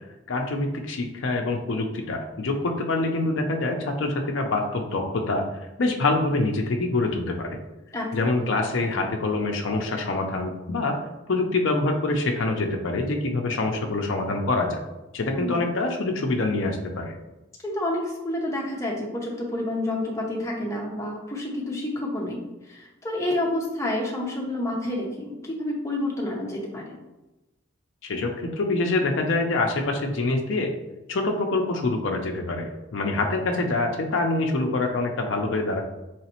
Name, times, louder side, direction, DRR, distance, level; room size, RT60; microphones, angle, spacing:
voice 1, 0.3-5.4 5.8-7.6 8.1-11.0 11.3-14.8 15.1-17.1 28.0-30.7 31.1-35.8, left 2 dB, 65° left, 2 dB, 0.5 m, -25 dB
voice 2, 7.9-8.3 15.4-15.6 17.6-26.9, left 1 dB, 15° left, -2 dB, 0.7 m, -29 dB
4.0 x 3.1 x 2.9 m, 1.0 s
head